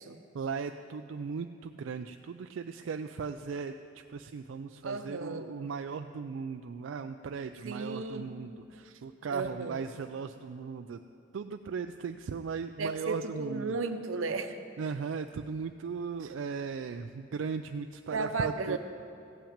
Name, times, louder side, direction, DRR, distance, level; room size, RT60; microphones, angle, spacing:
voice 1, 0.3-3.7 4.1-11.0 11.3-13.7 14.8-18.8, right 5 dB, 70° right, 7 dB, 0.4 m, -37 dB
voice 2, 4.8-5.5 7.6-8.3 8.8-9.0 9.3-9.8 12.8-14.9 16.2-16.3 18.1-18.8, right 3 dB, 90° right, 8 dB, 0.8 m, -35 dB
15.0 x 5.8 x 8.7 m, 2.6 s
head